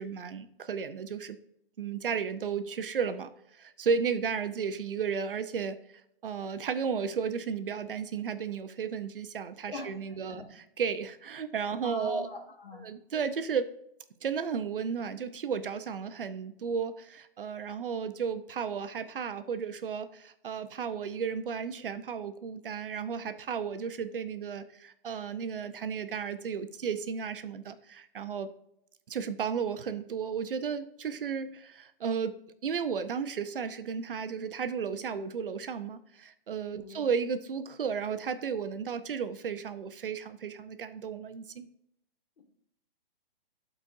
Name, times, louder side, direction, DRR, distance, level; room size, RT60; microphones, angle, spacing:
voice 1, 0.0-1.4 1.8-5.8 6.2-12.3 12.8-13.7 14.2-28.5 29.1-32.4 32.6-41.7, right 6 dB, 65° right, 11 dB, 0.8 m, -34 dB
voice 2, 11.8-12.8 36.7-37.0, left 3 dB, 75° left, 0 dB, 2.6 m, -40 dB
12.5 x 4.4 x 2.6 m, 0.76 s
hypercardioid pair, 175°, 29 cm